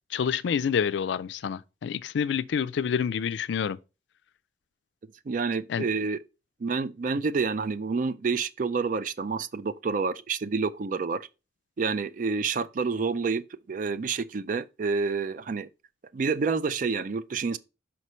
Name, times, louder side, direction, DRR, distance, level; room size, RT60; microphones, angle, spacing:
voice 1, 0.1-3.8 5.7-5.8, left 7 dB, 70° left, 0.3 m, -28 dB
voice 2, 5.3-6.2 6.6-11.3 11.8-15.7 16.1-17.6, right 4 dB, 45° right, 0.4 m, -28 dB
5.7 x 5.5 x 3.0 m
head